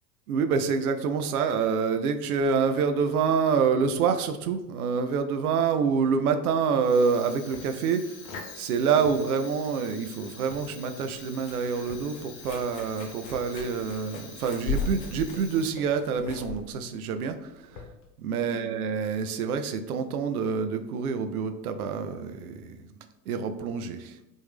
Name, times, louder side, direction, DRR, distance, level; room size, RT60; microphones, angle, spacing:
voice 1, 0.3-8.2 8.5-17.8 18.2-22.9 23.3-24.2, right 6 dB, 65° right, 8 dB, 0.6 m, -27 dB
Fire, 6.8-16.1, left 5 dB, 45° left, 0.9 m, -46 dB
sound 1, 7.5-18.2, left 4 dB, 65° left, 1.1 m, -51 dB
sound 2, 10.3-18.1, left 3 dB, 15° left, 0.3 m, -38 dB
3.5 x 2.6 x 3.4 m, 0.94 s
figure-of-eight pair, 85°, 49 cm